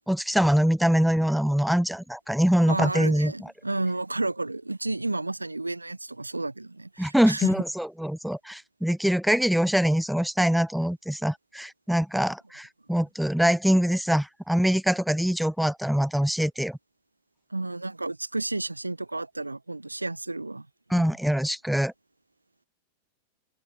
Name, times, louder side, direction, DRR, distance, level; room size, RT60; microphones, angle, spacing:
voice 1, 0.1-3.5 7.0-16.8 20.9-21.9, equal, ahead, 2.1 m, -24 dB
voice 2, 2.7-7.5 17.5-20.7 20.9-21.1, right 2 dB, 85° right, 4.2 m, -31 dB
figure-of-eight pair, 90°, 0 cm